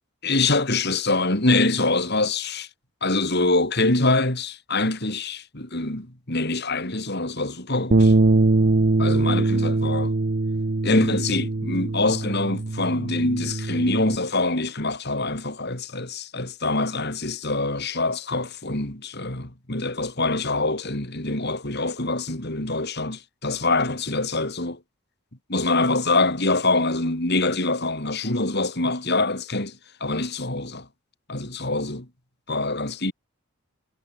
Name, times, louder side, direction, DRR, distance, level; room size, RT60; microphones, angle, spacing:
voice 1, 0.2-2.7 3.0-8.1 9.0-10.1 10.8-24.8 25.5-30.9 31.3-32.1 32.5-33.1, left 2 dB, 50° left, 3.4 m, -24 dB
sound 1, 7.9-14.2, right 2 dB, 45° right, 0.7 m, -22 dB
head